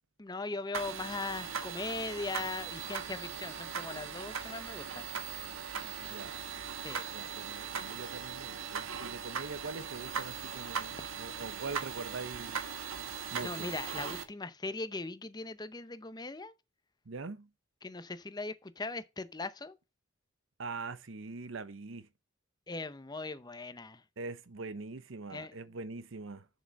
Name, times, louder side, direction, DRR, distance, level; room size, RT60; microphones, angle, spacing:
voice 1, 0.2-5.1 6.8-7.1 13.4-16.5 17.8-19.8 22.7-24.0 25.3-25.5, left 3 dB, 20° left, 0.7 m, -39 dB
sound 1, 0.7-14.2, right 6 dB, 80° right, 1.3 m, -39 dB
voice 2, 5.8-6.4 7.1-12.6 13.3-13.7 17.0-17.5 20.6-22.1 24.2-26.5, right 3 dB, 65° right, 0.8 m, -43 dB
7.5 x 6.9 x 5.2 m
head